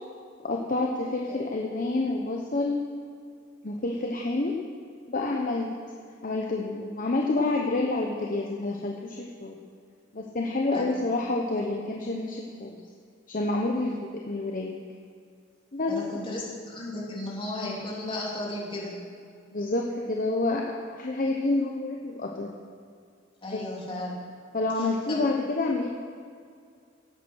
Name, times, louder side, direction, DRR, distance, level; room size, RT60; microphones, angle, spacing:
voice 1, 0.4-2.8 3.6-4.6 5.1-5.8 6.2-9.6 10.1-12.8 13.3-14.0 14.3-14.7 15.7-16.0 16.3-16.4 19.5-20.6 20.9-22.6 23.5-23.6 24.5-25.9, left 2 dB, 45° left, 0 dB, 1.0 m, -28 dB
voice 2, 10.7-11.0 13.7-14.0 15.9-19.0 23.4-24.1 24.8-25.2, left 1 dB, 25° left, -4 dB, 3.1 m, -35 dB
16.5 x 8.4 x 6.4 m, 2.2 s
head